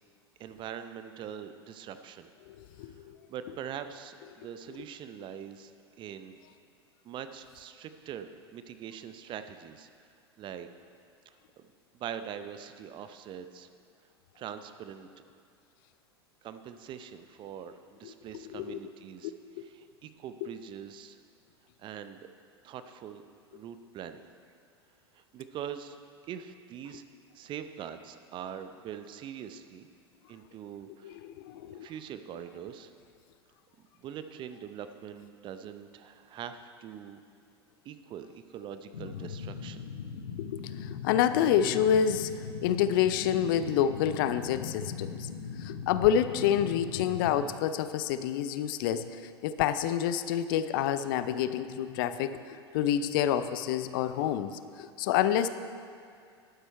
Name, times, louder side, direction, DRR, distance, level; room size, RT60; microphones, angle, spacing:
voice 1, 0.4-2.3 3.3-5.7 6.0-6.4 7.0-9.9 10.4-10.7 11.3-11.4 11.9-13.7 14.4-15.3 16.4-21.2 21.8-22.2 22.6-23.2 23.5-24.3 25.1-26.0 26.3-27.0 27.3-29.9 30.3-31.2 31.7-32.9 34.0-37.2 37.8-39.8, right 9 dB, 35° right, 10 dB, 0.6 m, -43 dB
voice 2, 2.5-3.2 18.0-18.1 18.4-18.8 19.6-19.7 20.4-20.5 31.0-31.9 40.4-42.3 42.6-45.3 45.6-52.4 52.7-55.5, left 9 dB, 55° left, 13 dB, 0.5 m, -28 dB
sound 1, 38.9-47.5, left 6 dB, 75° left, 0.8 m, -40 dB
11.5 x 9.0 x 4.5 m, 2.3 s
figure-of-eight pair, 85°, 14 cm